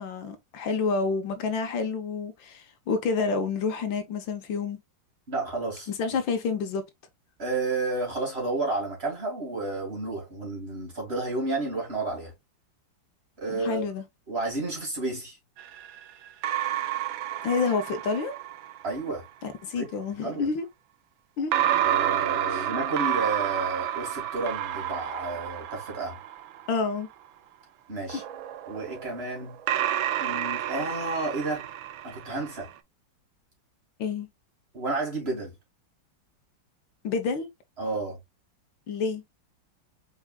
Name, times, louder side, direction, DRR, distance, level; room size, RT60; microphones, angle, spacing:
voice 1, 0.0-4.8 6.0-6.8 13.5-14.0 17.4-18.3 19.4-20.7 21.4-21.5 22.5-22.7 26.7-27.1 28.1-28.2 34.0-34.3 37.0-37.5 38.9-39.2, left 4 dB, 75° left, 1.6 m, -28 dB
voice 2, 5.3-5.9 7.4-12.3 13.4-13.8 14.3-15.4 18.8-19.2 19.7-19.9 20.2-20.5 21.8-26.2 27.9-28.2 28.7-29.6 30.2-31.7 32.0-32.7 34.7-35.5 37.8-38.2, right 2 dB, 30° right, 2.6 m, -31 dB
sound 1, 15.6-19.0 21.5-27.0 28.1-32.7, right 11 dB, 80° right, 1.4 m, -30 dB
4.7 x 4.6 x 2.2 m
omnidirectional pair, 2.2 m